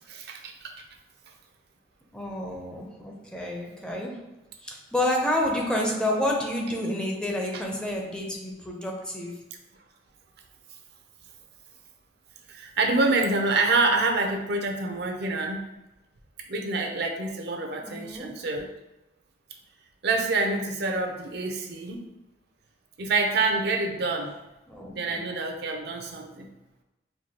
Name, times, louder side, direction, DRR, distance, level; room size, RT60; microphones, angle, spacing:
voice 1, 0.1-0.7 12.5-15.6 16.5-18.7 20.0-22.0 23.0-24.3 24.9-26.5, right 3 dB, 65° right, 3 dB, 0.6 m, -26 dB
voice 2, 2.1-4.3 4.6-9.4 17.8-18.3 24.7-25.2, left 1 dB, 5° left, 0 dB, 0.5 m, -29 dB
4.5 x 2.7 x 2.8 m, 0.98 s
head